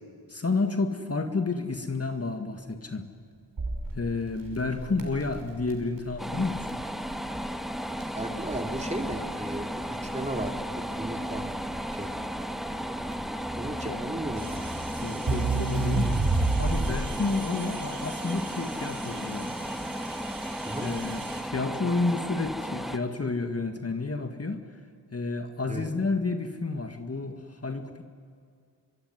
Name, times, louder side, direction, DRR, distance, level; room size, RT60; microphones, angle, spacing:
voice 1, 0.3-3.1 3.9-6.8 13.8-14.0 15.0-16.1 16.6-19.6 20.8-24.7 25.1-28.0, left 3 dB, 35° left, 6 dB, 2.0 m, -30 dB
Crackle, 3.6-17.1, right 3 dB, 55° right, 5.6 m, -31 dB
sound 1, 6.2-23.0, equal, ahead, 1.7 m, -34 dB
voice 2, 8.1-9.7 10.1-10.5 11.0-11.5 12.0-12.1 13.5-14.7 15.1-15.4 20.6-20.9 25.7-25.8, right 1 dB, 15° right, 4 dB, 3.1 m, -35 dB
sound 2, 14.4-21.4, right 6 dB, 80° right, 2.9 m, -44 dB
25.0 x 23.5 x 9.7 m, 2.2 s
cardioid pair, 55°, 42 cm